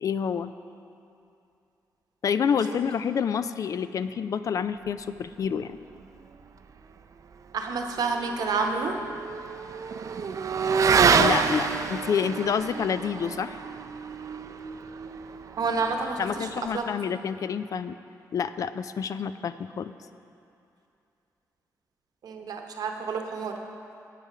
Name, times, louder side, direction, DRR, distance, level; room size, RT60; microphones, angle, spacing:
voice 1, 0.0-0.5 2.2-5.8 11.1-13.6 16.2-18.0 18.3-19.9, left 7 dB, 55° left, 13 dB, 0.3 m, -28 dB
voice 2, 7.5-9.0 15.6-16.5 16.7-16.8 22.2-23.6, right 4 dB, 70° right, 4 dB, 0.9 m, -29 dB
Motorcycle / Accelerating revving vroom, 8.0-16.7, right 5 dB, 55° right, 0.4 m, -27 dB
8.4 x 8.2 x 4.9 m, 2.7 s
cardioid pair, 80°, 7 cm